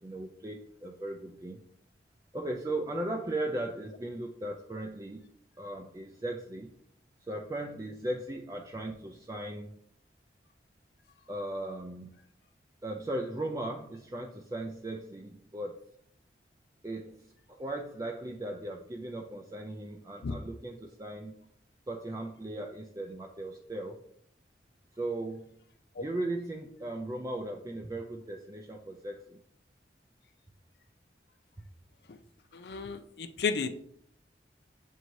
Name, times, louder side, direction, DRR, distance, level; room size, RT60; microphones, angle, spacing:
voice 1, 0.0-1.6 2.3-5.3 5.6-6.7 7.2-9.8 11.3-12.1 12.8-15.8 16.8-21.4 21.9-24.0 24.9-25.6 26.0-29.4, right 1 dB, 20° right, 2 dB, 0.4 m, -37 dB
voice 2, 32.5-33.7, left 5 dB, 65° left, 9 dB, 0.4 m, -33 dB
7.5 x 2.7 x 4.6 m, 0.68 s
head